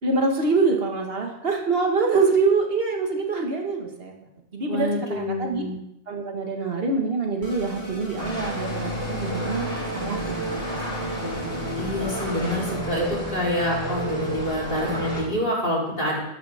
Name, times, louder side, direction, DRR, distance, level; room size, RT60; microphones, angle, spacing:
voice 1, 0.0-4.1 4.5-5.6 6.1-9.7 9.9-10.2 10.5-10.6 11.0-11.6, right 4 dB, 55° right, 2 dB, 1.9 m, -25 dB
voice 2, 4.7-5.8 11.8-16.2, left 1 dB, 45° left, -5 dB, 4.3 m, -27 dB
sound 1, 7.4-12.7, equal, 85° right, 4.7 m, -36 dB
sound 2, 8.2-15.2, right 1 dB, 30° left, 5.0 m, -31 dB
12.5 x 12.5 x 3.6 m, 0.81 s
omnidirectional pair, 1.2 m